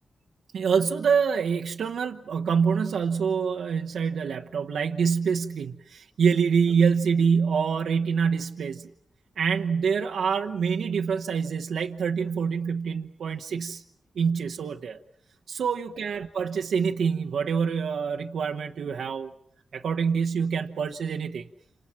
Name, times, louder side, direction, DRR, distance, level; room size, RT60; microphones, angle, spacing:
voice 1, 0.5-8.9 9.4-13.8 14.2-15.0 15.5-19.3 19.7-21.5, right 6 dB, 85° right, 3 dB, 1.0 m, -26 dB
29.5 x 28.0 x 5.9 m, 0.68 s
cardioid pair, 50°, 0 cm